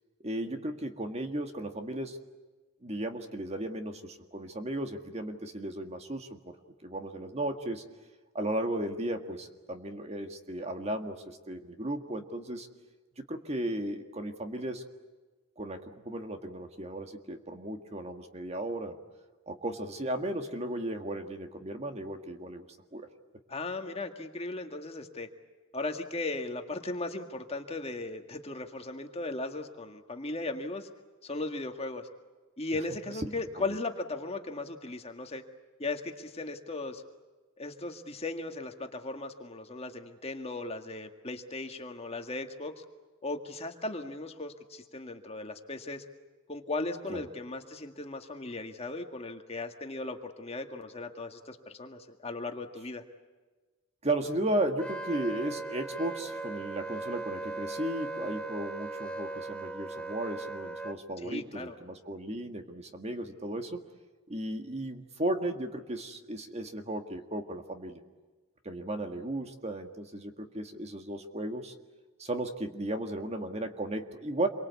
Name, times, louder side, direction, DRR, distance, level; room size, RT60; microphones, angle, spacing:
voice 1, 0.2-2.2 2.8-6.5 6.8-7.8 8.3-12.7 13.2-14.8 15.6-19.0 19.5-22.7 22.9-23.1 33.3-33.7 47.1-47.2 54.0-63.8 64.3-68.0 68.7-71.7 72.2-74.5, right 1 dB, 30° right, 6 dB, 1.8 m, -35 dB
voice 2, 23.5-25.3 25.7-30.9 31.2-32.1 32.6-35.4 35.8-37.0 37.6-42.8 43.2-46.0 46.5-53.0 61.2-61.8, left 2 dB, 30° left, 5 dB, 1.9 m, -37 dB
Wind instrument woodwind instrument, 54.8-61.0, right 2 dB, 5° left, 0.9 m, -38 dB
27.5 x 23.5 x 8.4 m, 1.3 s
head